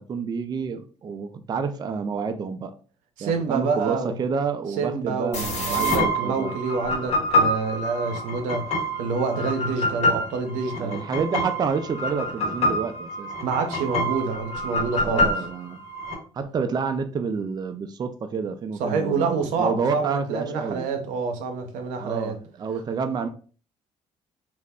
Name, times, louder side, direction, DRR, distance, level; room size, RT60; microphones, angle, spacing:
voice 1, 0.0-2.7 3.2-6.5 10.8-13.3 15.0-15.8 16.3-20.8 22.0-23.3, right 5 dB, 35° right, 0.4 m, -29 dB
voice 2, 3.2-4.2 4.8-11.0 13.4-15.3 18.8-22.4, right 4 dB, 85° right, 0.6 m, -27 dB
sound 1, 5.3-16.1, left 1 dB, 60° left, 1.2 m, -26 dB
2.4 x 2.1 x 3.4 m
cardioid pair, 85°, 13 cm